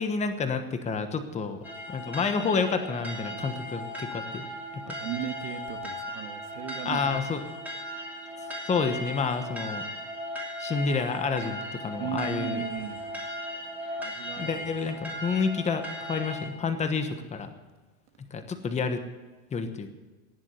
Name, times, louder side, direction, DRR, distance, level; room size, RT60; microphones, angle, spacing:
voice 1, 0.0-4.5 6.8-7.4 8.6-9.8 10.6-12.6 14.4-17.5 18.3-19.0 19.5-19.9, left 5 dB, 15° left, 8 dB, 1.1 m, -29 dB
sound 1, 1.6-16.5, equal, 5° right, 2.8 m, -37 dB
voice 2, 5.0-7.1 12.0-13.0 14.0-14.7, right 11 dB, 80° right, 7 dB, 1.9 m, -36 dB
19.0 x 7.4 x 8.2 m, 1.3 s
supercardioid pair, 145°, 45 cm